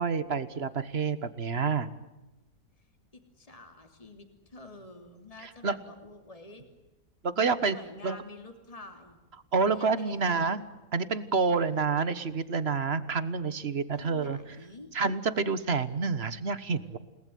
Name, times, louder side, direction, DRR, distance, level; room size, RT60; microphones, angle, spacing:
voice 1, 0.0-1.9 5.4-5.8 7.2-7.8 8.0-8.2 9.5-10.7 10.9-14.6 14.9-17.0, right 5 dB, 45° right, 14 dB, 1.5 m, -28 dB
voice 2, 3.1-6.7 7.7-9.2 9.7-10.5 13.9-14.9, left 2 dB, 25° left, 5 dB, 3.0 m, -48 dB
29.5 x 19.5 x 9.4 m, 1.0 s
omnidirectional pair, 1.6 m